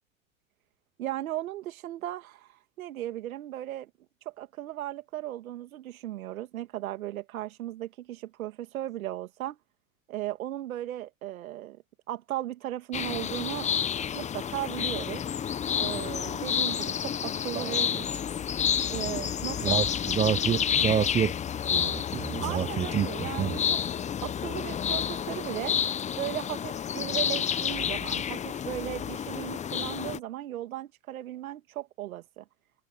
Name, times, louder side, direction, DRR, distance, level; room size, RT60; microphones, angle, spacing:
voice 1, 1.0-2.5 2.8-3.9 4.4-9.6 10.1-11.8 12.1-13.7 14.1-15.2 15.8-17.9 18.9-19.8 22.4-23.8 24.2-25.7 26.1-32.4, right 14 dB, 75° right, 2.5 m, -36 dB
sound 1, 12.9-30.2, left 8 dB, 15° left, 0.7 m, -30 dB
voice 2, 17.5-18.0 19.6-21.4 21.7-23.6, right 9 dB, 15° right, 0.6 m, -29 dB
hypercardioid pair, 110°, 42 cm